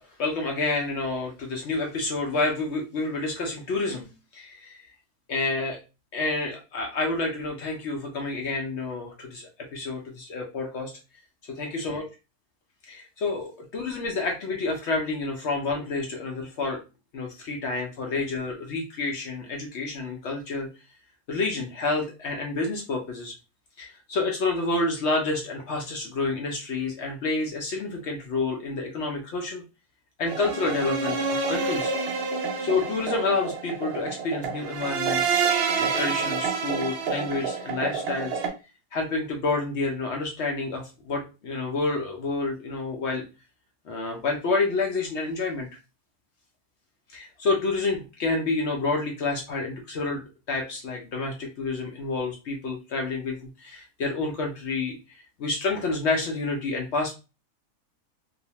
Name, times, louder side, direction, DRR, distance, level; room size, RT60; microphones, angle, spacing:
voice 1, 0.0-4.9 5.3-5.8 6.1-10.9 11.5-12.0 12.9-16.8 17.1-20.7 21.3-23.3 23.8-29.6 30.2-31.9 32.6-35.4 35.8-38.4 38.9-43.2 43.9-45.7 47.1-50.2 50.5-55.0 55.4-57.1, left 3 dB, 70° left, 1 dB, 0.6 m, -29 dB
sound 1, 30.3-38.5, right 5 dB, 80° right, 0.5 m, -28 dB
2.7 x 2.0 x 2.8 m, 0.30 s
omnidirectional pair, 1.6 m